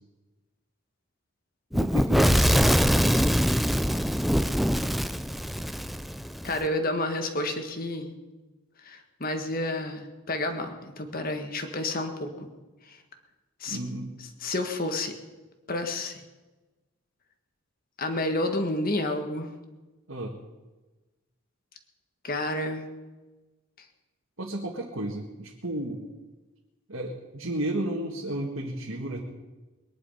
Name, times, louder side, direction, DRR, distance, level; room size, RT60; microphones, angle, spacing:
Fire / Explosion, 1.7-6.6, equal, ahead, 0.4 m, -23 dB
voice 1, 1.7-2.9 13.7-14.1 20.1-20.3 24.4-26.0 26.9-29.2, right 1 dB, 65° right, -2 dB, 1.8 m, -33 dB
voice 2, 6.4-8.1 8.8-12.5 12.9-13.0 13.6-13.8 14.4-15.1 15.7-16.2 18.0-19.5 22.2-22.9, left 2 dB, 40° left, 6 dB, 1.6 m, -30 dB
22.0 x 10.5 x 5.6 m, 1.2 s
head